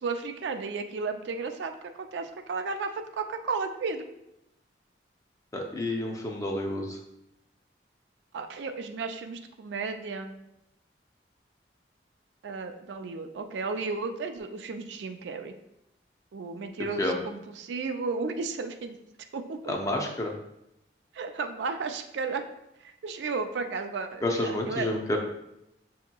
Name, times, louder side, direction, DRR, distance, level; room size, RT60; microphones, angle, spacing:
voice 1, 0.0-1.7 2.0-4.1 8.3-10.3 12.4-15.5 16.3-19.0 19.3-19.6 21.1-22.5 22.8-24.9, right 4 dB, 80° right, 7 dB, 0.4 m, -33 dB
voice 2, 5.5-7.0 17.0-17.2 19.7-20.3 24.2-25.2, left 1 dB, 20° left, 1 dB, 0.4 m, -29 dB
6.2 x 2.8 x 2.2 m, 0.87 s
head